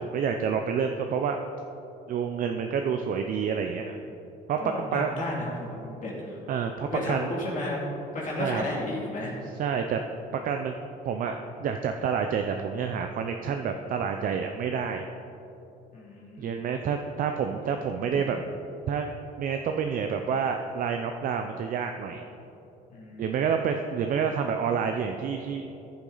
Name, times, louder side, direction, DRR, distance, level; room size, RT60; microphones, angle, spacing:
voice 1, 0.0-1.4 2.1-4.0 4.5-4.6 4.9-5.1 6.5-7.4 8.4-8.6 9.6-10.0 10.3-10.7 11.0-15.1 16.4-18.4 18.9-19.1 19.4-22.3 23.2-25.7, right 6 dB, 55° right, 5 dB, 0.6 m, -28 dB
voice 2, 4.6-6.4 6.8-7.8 8.1-9.3 15.9-16.5 22.9-23.5, left 1 dB, 50° left, -4 dB, 2.5 m, -33 dB
14.5 x 7.1 x 4.0 m, 2.9 s
cardioid pair, 110°, 17 cm